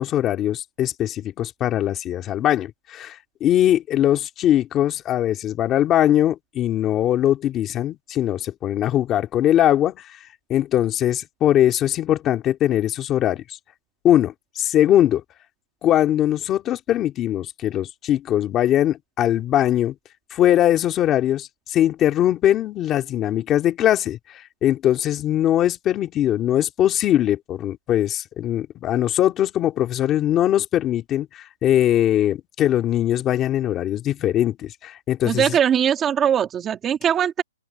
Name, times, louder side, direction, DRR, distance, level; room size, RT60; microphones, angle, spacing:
voice 1, 0.0-10.2 10.5-13.4 14.0-15.2 15.8-20.0 20.3-35.5, left 12 dB, 15° left, 2.1 m, -21 dB
voice 2, 35.2-37.4, right 9 dB, 10° right, 1.6 m, -20 dB
open air
hypercardioid pair, 170°, 0 cm